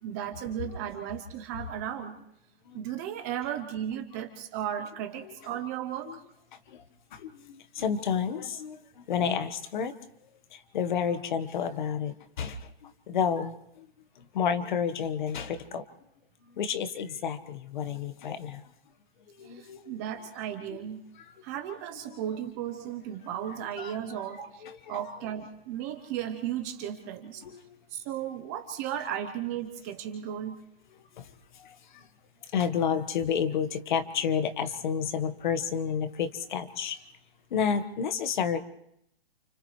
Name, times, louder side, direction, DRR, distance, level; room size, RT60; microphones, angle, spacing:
voice 1, 0.0-2.2 2.7-6.2 19.4-21.0 21.4-27.4 27.9-30.6, right 10 dB, 15° right, 7 dB, 0.7 m, -35 dB
voice 2, 7.1-9.9 10.5-13.8 14.2-15.8 16.5-18.7 19.3-19.9 20.7-20.9 21.2-21.3 22.1-22.2 23.8-24.3 24.6-25.2 27.4-27.8 31.2-32.1 32.5-37.0 37.5-38.6, left 7 dB, 50° left, 10 dB, 1.4 m, -31 dB
29.5 x 28.5 x 3.2 m, 0.76 s
hypercardioid pair, 170°, 32 cm